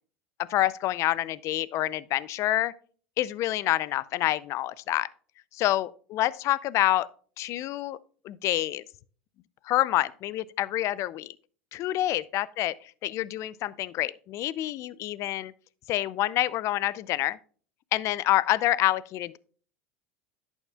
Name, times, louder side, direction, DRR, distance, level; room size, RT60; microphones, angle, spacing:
voice 1, 0.4-2.7 3.2-5.1 5.5-7.1 7.4-8.0 8.2-8.8 9.6-11.3 11.7-15.5 15.9-17.4 17.9-19.4, left 15 dB, 50° left, 0.5 m, -27 dB
11.0 x 7.2 x 2.3 m
hypercardioid pair, 90°, 6 cm